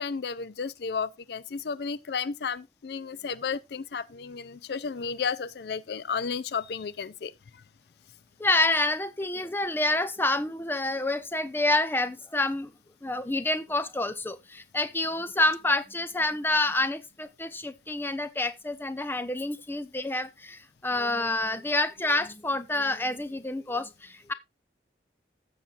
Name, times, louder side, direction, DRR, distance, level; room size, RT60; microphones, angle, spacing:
voice 1, 0.0-7.6, left 5 dB, 60° left, 0.4 m, -33 dB
voice 2, 8.4-12.7 13.0-24.3, left 2 dB, 10° left, 0.7 m, -28 dB
15.0 x 7.1 x 2.4 m
head